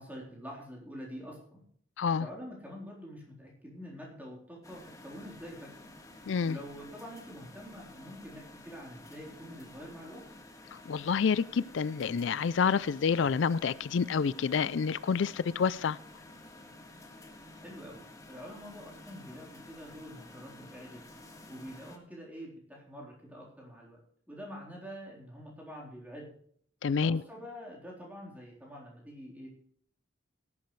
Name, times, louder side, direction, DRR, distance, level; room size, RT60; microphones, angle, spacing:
voice 1, 0.0-1.6 2.2-5.8 6.4-10.2 17.6-21.0 21.5-24.0 24.3-26.3 26.8-29.5, equal, 10° right, 3.9 m, -46 dB
sound 1, 4.6-22.0, left 2 dB, 15° left, 1.6 m, -51 dB
voice 2, 6.3-6.6 10.7-16.0 26.8-27.2, left 6 dB, 70° left, 0.4 m, -28 dB
18.0 x 11.0 x 3.2 m
head